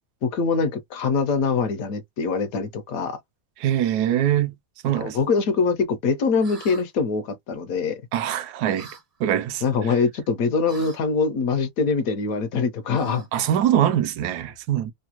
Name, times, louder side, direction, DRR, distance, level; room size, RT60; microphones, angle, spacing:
voice 1, 0.2-3.2 4.9-8.0 9.6-13.3, left 5 dB, 70° left, 0.9 m, -23 dB
voice 2, 3.6-4.5 4.8-5.2 8.1-8.9 9.2-9.9 13.3-14.9, right 11 dB, 80° right, 1.1 m, -23 dB
sound 1, 6.4-6.8 8.8-9.0 10.7-11.0 12.9-13.4, right 3 dB, 40° right, 0.5 m, -41 dB
3.2 x 2.1 x 2.9 m
omnidirectional pair, 1.7 m